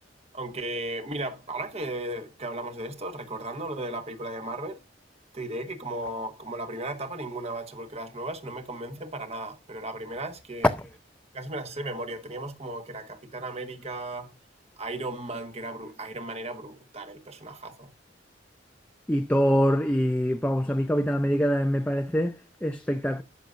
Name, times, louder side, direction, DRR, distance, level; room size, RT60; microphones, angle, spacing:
voice 1, 0.3-4.8 5.3-10.7 11.3-14.3 14.8-17.9, right 2 dB, 35° right, 1.5 m, -35 dB
voice 2, 19.1-23.2, equal, 5° left, 0.6 m, -24 dB
19.5 x 6.5 x 2.6 m
head